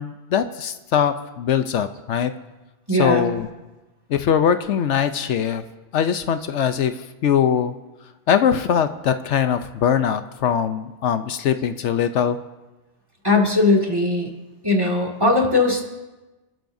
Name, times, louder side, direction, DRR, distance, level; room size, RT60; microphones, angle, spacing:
voice 1, 0.0-2.3 3.0-3.5 4.1-5.6 5.9-7.7 8.3-12.4, left 8 dB, 75° left, 10 dB, 1.0 m, -21 dB
voice 2, 2.9-3.3 13.2-14.3 14.6-15.8, left 2 dB, 20° right, 1 dB, 2.1 m, -19 dB
27.0 x 12.5 x 2.6 m, 1.1 s
omnidirectional pair, 1.2 m